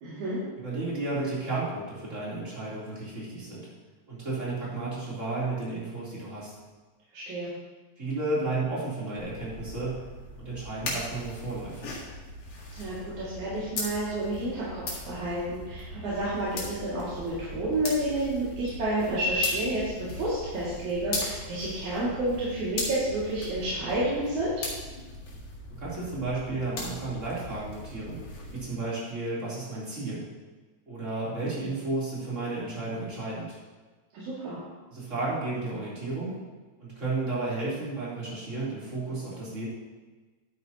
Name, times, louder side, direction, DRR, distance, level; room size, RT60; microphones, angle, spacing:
voice 1, 0.0-0.4 7.1-7.5 12.7-24.5 34.1-34.6, right 1 dB, 90° right, -10 dB, 3.7 m, -30 dB
voice 2, 0.6-3.7 4.1-6.5 8.0-10.1 10.4-12.0 25.7-30.3 30.9-33.6 34.9-36.4 36.8-39.7, right 2 dB, 25° right, -8 dB, 3.5 m, -33 dB
sound 1, 9.2-28.6, left 2 dB, 90° left, 3.4 m, -39 dB
11.5 x 9.2 x 2.9 m, 1.3 s
omnidirectional pair, 3.3 m